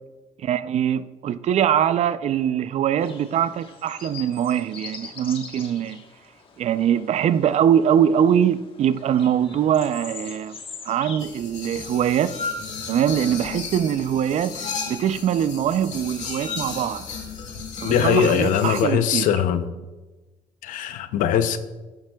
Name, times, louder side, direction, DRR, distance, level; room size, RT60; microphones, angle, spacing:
voice 1, 0.4-6.0 6.6-10.6 10.8-12.4 12.9-17.1 17.8-19.3, right 9 dB, 55° right, 0.4 m, -22 dB
sound 1, 3.0-11.3, left 5 dB, 40° left, 1.2 m, -42 dB
sound 2, 11.2-18.8, left 5 dB, 60° left, 1.7 m, -34 dB
voice 2, 17.8-19.7 20.6-21.6, left 8 dB, 80° left, 0.6 m, -21 dB
13.5 x 7.5 x 2.3 m
cardioid pair, 90°, 13 cm